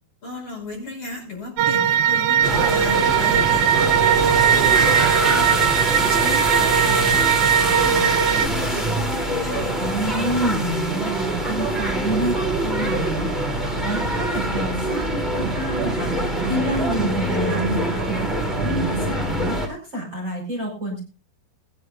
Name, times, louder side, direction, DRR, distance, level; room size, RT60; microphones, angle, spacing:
voice 1, 0.2-4.9 5.2-10.2, left 3 dB, 35° left, 0 dB, 6.5 m, -35 dB
sound 1, 1.6-8.5, right 9 dB, 80° right, 3.0 m, -19 dB
sound 2, 2.4-19.7, right 1 dB, ahead, 2.1 m, -24 dB
voice 2, 9.7-21.0, equal, 25° right, 0 dB, 4.5 m, -28 dB
21.0 x 11.0 x 2.6 m, 0.32 s
omnidirectional pair, 5.1 m